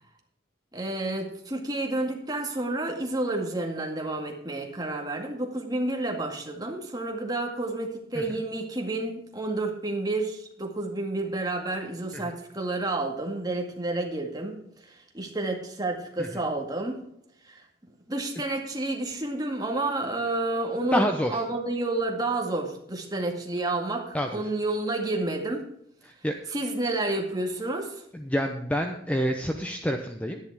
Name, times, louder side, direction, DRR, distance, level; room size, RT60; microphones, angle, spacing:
voice 1, 0.7-17.0 17.4-17.7 18.1-25.7 26.5-28.0, right 2 dB, 20° right, 1 dB, 2.0 m, -30 dB
voice 2, 20.9-21.4 24.1-24.4 26.0-26.3 28.1-30.4, equal, 5° left, 4 dB, 0.7 m, -28 dB
11.0 x 10.5 x 4.8 m, 0.73 s
head